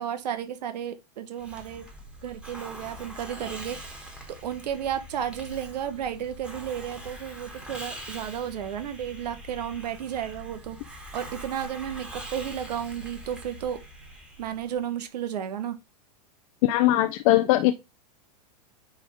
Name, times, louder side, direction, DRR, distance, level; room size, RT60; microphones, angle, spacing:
voice 1, 0.0-1.9 2.2-10.8 11.1-13.8 14.1-15.8, right 9 dB, 80° right, 1.0 m, -33 dB
Hiss, 1.4-14.9, right 1 dB, 5° right, 1.8 m, -43 dB
voice 2, 16.6-17.8, left 15 dB, 55° left, 0.6 m, -20 dB
9.3 x 3.4 x 3.5 m
hypercardioid pair, 120°, 21 cm